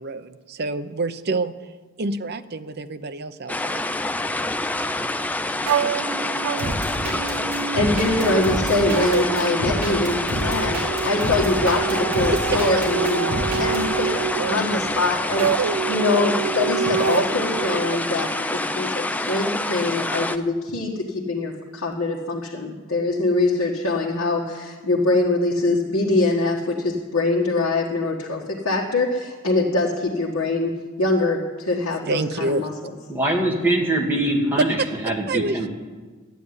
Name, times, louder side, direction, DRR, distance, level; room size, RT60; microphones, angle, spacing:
voice 1, 0.0-3.8 12.3-12.8 13.9-14.0 31.7-31.8 32.1-32.7 34.6-34.9 35.3-35.7, right 2 dB, 45° right, 10 dB, 0.7 m, -27 dB
sound 1, 3.5-20.4, left 2 dB, 5° left, 0.4 m, -27 dB
sound 2, 5.7-18.0, right 7 dB, 80° right, 0.4 m, -27 dB
sound 3, 6.6-13.8, equal, 65° right, 6.4 m, -29 dB
voice 2, 7.7-32.7, left 2 dB, 60° left, -4 dB, 1.7 m, -23 dB
voice 3, 33.1-34.8 35.0-35.7, right 1 dB, 10° right, -1 dB, 2.3 m, -22 dB
13.5 x 9.3 x 9.8 m, 1.4 s
head